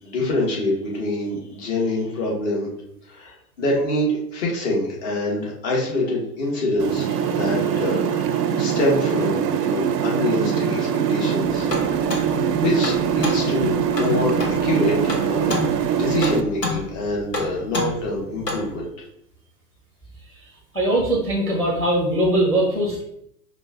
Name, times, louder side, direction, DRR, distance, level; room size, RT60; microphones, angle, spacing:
voice 1, 0.0-2.7 3.1-11.7 12.2-15.5 15.9-18.9, left 1 dB, 45° left, -2 dB, 1.6 m, -25 dB
sound 1, 6.8-16.4, right 8 dB, 80° right, 0.5 m, -22 dB
sound 2, 11.4-18.8, left 2 dB, 90° left, 1.0 m, -31 dB
voice 2, 20.7-23.0, right 1 dB, 5° left, -1 dB, 0.7 m, -21 dB
4.7 x 2.4 x 3.7 m, 0.75 s
figure-of-eight pair, 100°, 47 cm